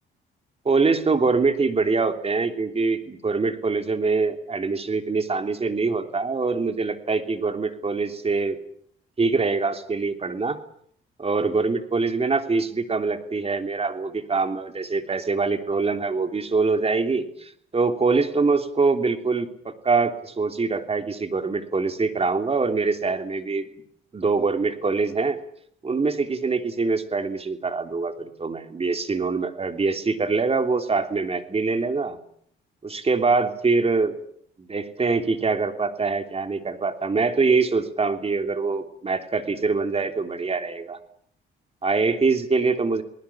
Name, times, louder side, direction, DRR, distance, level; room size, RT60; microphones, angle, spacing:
voice 1, 0.6-8.6 9.2-10.6 11.2-23.7 24.1-25.4 25.8-32.2 32.8-34.1 34.6-41.0 41.8-43.0, right 4 dB, 30° right, 7 dB, 3.2 m, -24 dB
29.0 x 19.5 x 7.2 m, 0.66 s
cardioid pair, 90°, 20 cm